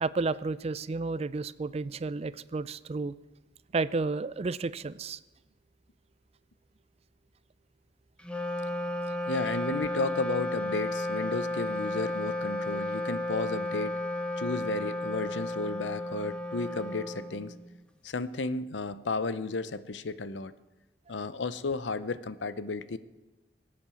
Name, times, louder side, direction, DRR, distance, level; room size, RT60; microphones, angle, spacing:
voice 1, 0.0-3.1 3.7-5.2, right 3 dB, 35° right, 17 dB, 0.4 m, -31 dB
Wind instrument woodwind instrument, 8.2-17.8, left 1 dB, 5° left, 1.0 m, -33 dB
voice 2, 9.3-14.0 14.4-17.5 18.0-20.5 21.1-23.0, left 3 dB, 90° left, 14 dB, 0.7 m, -33 dB
21.5 x 8.7 x 7.0 m, 1.1 s
head